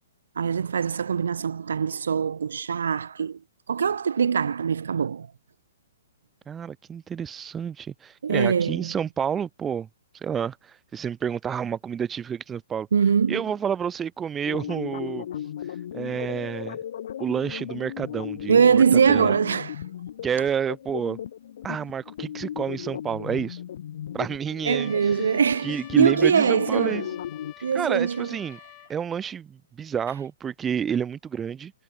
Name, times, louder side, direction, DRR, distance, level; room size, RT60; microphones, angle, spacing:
voice 1, 0.4-3.4 3.7-5.3 8.2-8.8 12.9-13.4 18.5-19.8 24.6-27.1 27.6-28.4, right 6 dB, 80° right, 0.6 m, -22 dB
voice 2, 6.5-9.9 10.2-12.9 13.3-15.3 15.9-16.8 17.2-19.3 20.2-21.2 21.6-23.6 24.1-24.9 25.6-27.0 27.7-28.6 28.9-31.7, right 7 dB, 15° right, 3.3 m, -29 dB
sound 1, 14.4-27.5, left 10 dB, 60° left, 3.4 m, -36 dB
Trumpet, 24.7-28.9, left 20 dB, 30° left, 7.9 m, -48 dB
hypercardioid pair, 140°, 0 cm